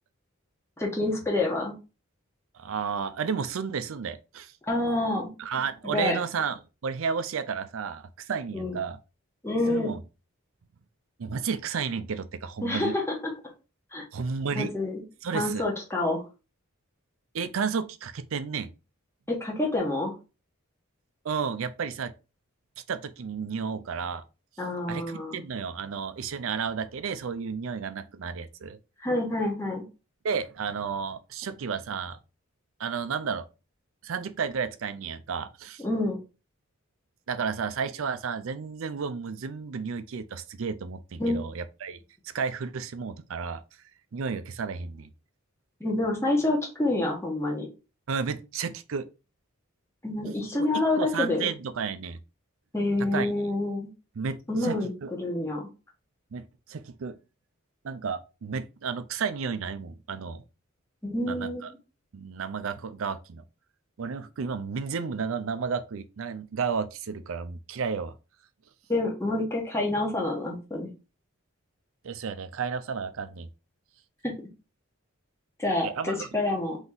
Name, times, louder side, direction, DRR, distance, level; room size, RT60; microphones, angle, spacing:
voice 1, 0.8-1.7 4.7-5.3 5.8-6.2 8.5-8.8 9.4-9.9 12.6-13.3 13.9-14.0 14.6-15.0 15.3-16.2 19.3-20.1 24.6-25.4 29.0-29.8 35.8-36.2 41.2-41.5 45.8-47.7 50.0-51.4 52.7-53.9 54.5-55.7 61.0-61.7 68.9-70.9 74.2-74.3 75.6-76.8, left 2 dB, 10° left, 1.2 m, -27 dB
voice 2, 2.5-4.5 5.4-9.0 9.7-10.0 11.2-13.0 14.1-14.7 15.2-15.6 17.3-18.7 21.2-22.1 22.9-24.2 24.9-28.8 30.2-32.2 32.8-33.5 34.0-35.8 37.3-42.0 42.2-43.6 44.1-45.1 48.1-49.1 50.5-50.7 51.0-52.2 53.1-53.3 54.2-55.1 56.3-57.2 57.8-60.4 61.3-61.7 62.1-63.4 64.0-68.1 72.0-73.5 75.8-76.3, right 6 dB, 70° right, 0.5 m, -32 dB
3.9 x 2.9 x 3.8 m
head